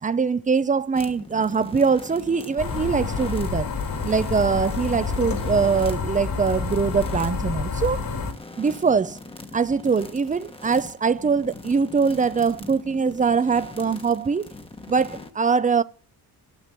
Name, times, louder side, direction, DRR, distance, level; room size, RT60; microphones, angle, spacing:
voice 1, 0.0-3.7 4.0-8.1 8.6-9.2 9.5-14.5 14.9-15.8, right 5 dB, 20° right, 0.6 m, -22 dB
sound 1, 0.9-15.3, left 2 dB, 15° left, 1.3 m, -41 dB
sound 2, 2.6-8.3, left 4 dB, 65° left, 3.3 m, -28 dB
15.5 x 7.8 x 9.0 m
wide cardioid pair, 180°, 37 cm